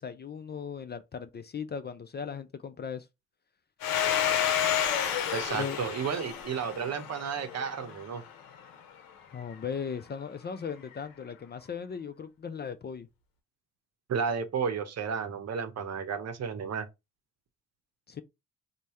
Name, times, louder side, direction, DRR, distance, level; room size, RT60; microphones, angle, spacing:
voice 1, 0.0-3.1 5.5-5.8 6.1-6.2 9.3-13.1 18.1-18.2, left 6 dB, 30° left, 0.5 m, -37 dB
Domestic sounds home sounds, 3.8-8.2, left 9 dB, 75° left, 0.7 m, -30 dB
voice 2, 5.3-8.2 14.1-16.9, right 6 dB, 45° right, 0.8 m, -32 dB
3.3 x 2.2 x 4.1 m
hypercardioid pair, 60°, 35 cm